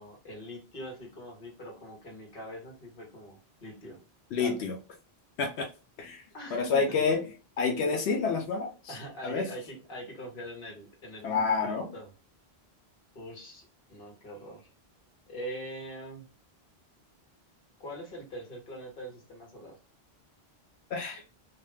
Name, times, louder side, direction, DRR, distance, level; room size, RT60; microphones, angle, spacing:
voice 1, 0.0-4.0 4.4-4.6 6.3-7.0 8.9-12.1 13.1-14.7 15.3-16.3 17.8-19.8, equal, 60° left, 0 dB, 1.2 m, -43 dB
voice 2, 4.3-4.7 5.4-5.7 6.0-6.2 6.5-7.2 7.6-8.9 9.2-9.5 11.2-11.9 20.9-21.2, left 5 dB, 90° left, 2 dB, 0.9 m, -28 dB
2.4 x 2.3 x 3.1 m, 0.35 s
omnidirectional pair, 1.1 m